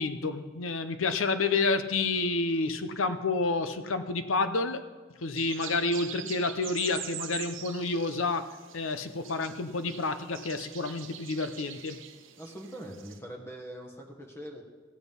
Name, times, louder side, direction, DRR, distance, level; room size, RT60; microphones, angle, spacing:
voice 1, 0.0-4.8 5.2-12.0, left 3 dB, 90° left, 10 dB, 0.7 m, -29 dB
sound 1, 5.4-13.2, right 10 dB, 70° right, 0.8 m, -44 dB
voice 2, 12.4-14.6, equal, 15° left, 2 dB, 1.3 m, -42 dB
15.0 x 8.1 x 5.4 m, 1.3 s
head